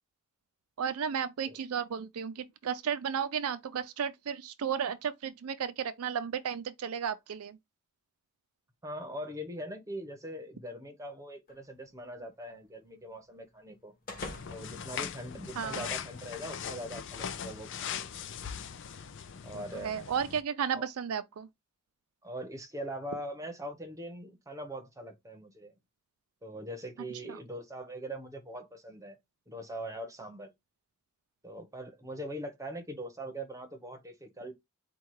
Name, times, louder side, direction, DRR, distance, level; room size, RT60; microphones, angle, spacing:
voice 1, 0.8-7.6 15.6-15.9 19.8-21.5 27.2-27.4, right 7 dB, 80° right, 0.4 m, -33 dB
voice 2, 8.8-13.9 14.5-18.1 19.4-20.0 20.7-20.9 22.2-25.7 26.4-29.2 29.5-30.5 31.4-34.5, right 1 dB, 15° right, 0.8 m, -42 dB
sound 1, 11.5-15.9, left 2 dB, 40° left, 1.1 m, -49 dB
Tying-and-untying-running-shoes, 14.2-20.4, left 8 dB, 55° left, 0.5 m, -40 dB
4.4 x 2.3 x 4.6 m
head